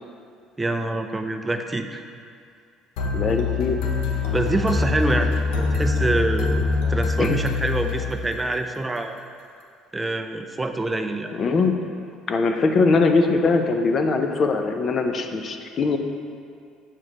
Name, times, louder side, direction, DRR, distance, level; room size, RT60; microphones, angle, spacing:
voice 1, 0.6-2.0 4.3-9.2 9.9-11.3, right 2 dB, 15° right, 6 dB, 0.5 m, -26 dB
sound 1, 3.0-8.6, left 4 dB, 85° left, 0.8 m, -24 dB
voice 2, 3.1-3.8 7.2-7.4 11.3-11.8 12.3-16.0, left 3 dB, 40° left, 6 dB, 0.6 m, -21 dB
7.4 x 4.9 x 4.1 m, 2.3 s
cardioid pair, 105°, 0 cm